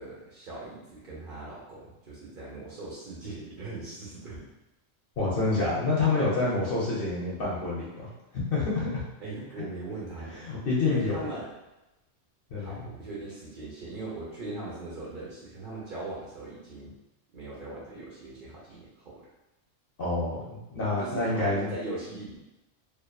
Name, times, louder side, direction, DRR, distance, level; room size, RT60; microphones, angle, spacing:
voice 1, 0.0-4.4 9.2-10.4 10.8-11.5 12.6-16.9 17.3-19.2 21.0-22.4, right 2 dB, 50° right, -7 dB, 0.8 m, -40 dB
voice 2, 5.2-9.0 9.6-9.7 10.4-11.3 12.5-12.8 20.0-21.7, left 3 dB, 60° left, -5 dB, 0.7 m, -28 dB
2.5 x 2.3 x 2.2 m, 0.97 s
omnidirectional pair, 1.2 m